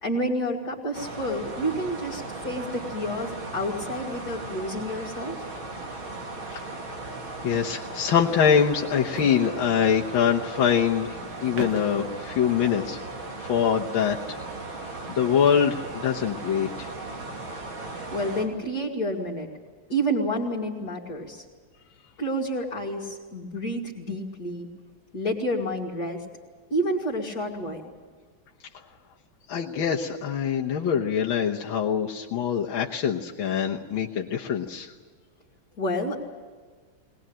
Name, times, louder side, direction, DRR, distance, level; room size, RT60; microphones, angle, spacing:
voice 1, 0.0-5.4 18.1-19.5 19.9-21.4 22.2-24.7 25.1-26.2 26.7-27.9 35.8-36.2, equal, 50° left, -4 dB, 3.1 m, -29 dB
sound 1, 0.9-18.5, right 2 dB, 80° right, 3.7 m, -37 dB
sound 2, 6.5-6.7 7.0-7.1 9.0-10.1 11.4-12.1, right 4 dB, 60° right, 2.0 m, -39 dB
voice 2, 7.4-13.0 13.4-14.4 15.1-16.9 29.5-34.9, left 7 dB, 80° left, -1 dB, 2.0 m, -24 dB
21.5 x 20.0 x 8.8 m, 1.5 s
omnidirectional pair, 2.2 m